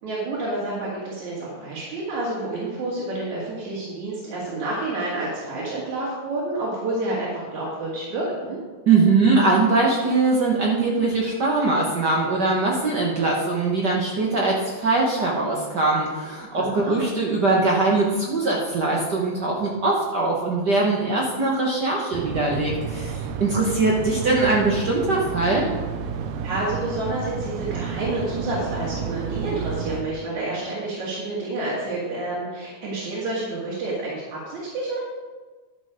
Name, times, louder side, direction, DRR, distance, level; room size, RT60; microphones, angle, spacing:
voice 1, 0.0-8.6 16.6-17.0 23.7-23.8 26.4-35.0, right 2 dB, 70° right, -7 dB, 3.5 m, -29 dB
voice 2, 8.9-25.6, right 3 dB, 55° right, -2 dB, 1.2 m, -21 dB
sound 1, 22.1-30.0, right 6 dB, 90° right, 1.3 m, -31 dB
11.5 x 6.6 x 5.1 m, 1.3 s
omnidirectional pair, 3.5 m